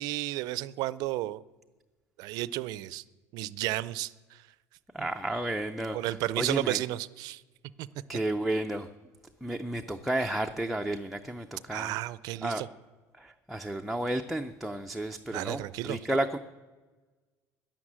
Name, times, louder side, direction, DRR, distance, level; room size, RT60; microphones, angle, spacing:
voice 1, 0.0-1.4 2.2-3.0 3.3-4.4 5.9-7.4 7.8-7.9 11.7-12.7 15.3-16.0, right 16 dB, 65° right, 18 dB, 0.4 m, -32 dB
voice 2, 4.9-6.8 8.1-8.9 9.4-12.0 12.4-12.6 13.2-16.4, right 1 dB, ahead, 3 dB, 0.4 m, -32 dB
11.0 x 10.5 x 7.4 m, 1.2 s
cardioid pair, 150°, 7 cm